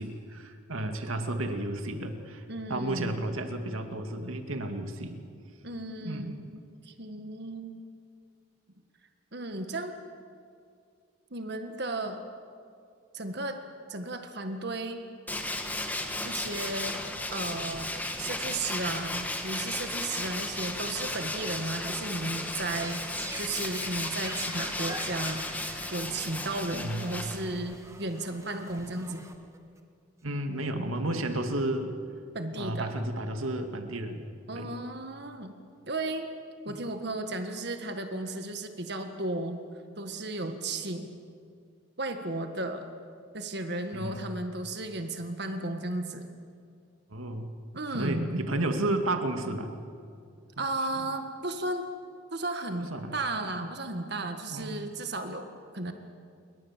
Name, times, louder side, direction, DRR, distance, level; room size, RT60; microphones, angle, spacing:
voice 1, 0.0-2.4 2.7-5.2 6.0-6.4 26.7-27.2 30.2-31.9 32.6-34.2 34.5-34.7 36.7-36.8 43.9-44.2 47.1-47.5 47.9-49.7 50.6-50.7 50.9-51.0 52.8-53.1 54.5-54.7, right 1 dB, 85° right, 5 dB, 2.4 m, -32 dB
voice 2, 2.5-3.2 5.6-7.8 9.3-10.0 11.3-12.2 13.1-13.6 13.9-15.0 16.2-17.0 17.3-17.9 18.2-25.4 25.9-29.2 32.3-32.9 34.5-35.5 35.9-36.3 36.6-39.6 40.0-41.1 42.0-42.9 43.3-46.2 47.7-48.3 50.6-51.9 52.3-55.5 55.7-55.9, right 2 dB, 55° right, 6 dB, 1.7 m, -34 dB
Tools, 15.3-27.8, left 2 dB, 10° left, 1.9 m, -35 dB
sound 1, 22.5-29.8, right 2 dB, 15° right, 1.4 m, -46 dB
29.0 x 23.0 x 7.5 m, 2.3 s
head